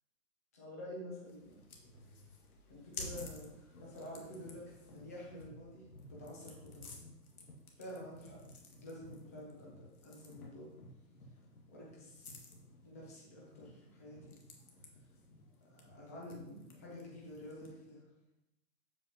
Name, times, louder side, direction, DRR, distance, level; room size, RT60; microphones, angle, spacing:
voice 1, 0.5-1.6 2.7-5.8 6.2-6.9 7.8-8.4 8.8-10.7 11.7-12.4 12.8-14.3 15.7-18.0, left 1 dB, 10° left, -5 dB, 0.6 m, -49 dB
sound 1, 1.2-17.9, left 2 dB, 60° left, 1.9 m, -53 dB
8.2 x 7.7 x 2.9 m, 0.87 s
hypercardioid pair, 160°, 49 cm